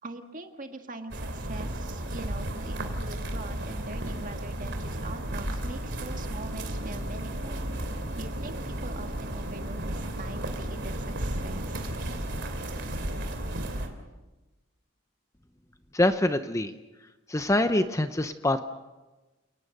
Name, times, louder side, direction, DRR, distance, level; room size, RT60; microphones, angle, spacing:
voice 1, 0.0-7.6 8.2-11.9, right 2 dB, 40° right, 5 dB, 1.8 m, -43 dB
sound 1, 1.1-13.9, right 1 dB, 55° right, 3.1 m, -33 dB
voice 2, 15.9-16.7 17.3-18.6, left 1 dB, 15° left, 9 dB, 0.7 m, -25 dB
29.5 x 19.0 x 6.7 m, 1.1 s
head